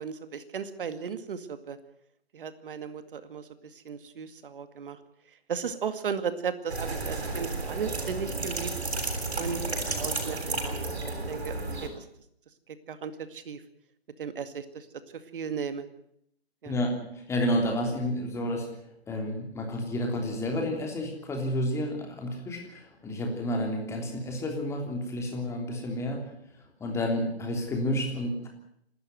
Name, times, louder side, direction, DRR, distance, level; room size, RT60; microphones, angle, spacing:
voice 1, 0.0-1.8 2.3-3.4 3.7-5.0 5.5-8.7 9.4-9.6 10.0-11.5 11.8-12.0 12.9-13.6 14.2-14.9 15.3-15.8 16.6-16.8, right 6 dB, 55° right, 11 dB, 2.2 m, -35 dB
sound 1, 6.7-11.9, right 3 dB, 75° right, 7.5 m, -32 dB
voice 2, 16.6-18.7 19.1-26.3 26.8-28.5, left 1 dB, 10° left, 2 dB, 3.4 m, -30 dB
28.0 x 13.0 x 7.9 m, 0.71 s
figure-of-eight pair, 145°, 32 cm